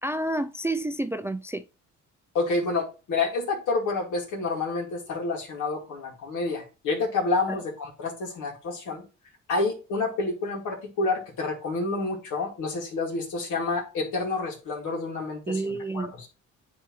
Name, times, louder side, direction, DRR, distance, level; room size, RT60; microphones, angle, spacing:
voice 1, 0.0-1.7 7.5-7.6 15.5-16.1, right 2 dB, 10° right, 0.3 m, -29 dB
voice 2, 2.3-9.0 9.5-16.3, left 3 dB, 85° left, 2.3 m, -29 dB
9.7 x 3.4 x 3.1 m
cardioid pair, 90°, 30 cm